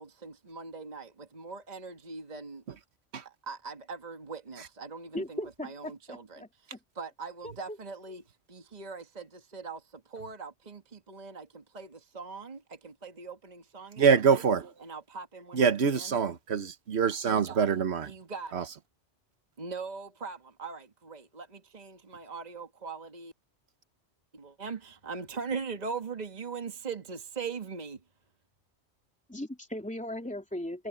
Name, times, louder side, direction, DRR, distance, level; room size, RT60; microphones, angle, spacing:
voice 1, 0.0-2.6 3.2-14.4 14.8-16.2 18.0-18.7 19.6-23.3 24.3-28.0, right 5 dB, 40° right, 1.6 m, -41 dB
voice 2, 5.1-6.8 7.4-7.8 29.3-30.9, left 1 dB, 5° left, 3.0 m, -38 dB
voice 3, 14.0-14.7 15.5-18.1 18.5-18.6, right 6 dB, 75° right, 1.3 m, -25 dB
omnidirectional pair, 1.1 m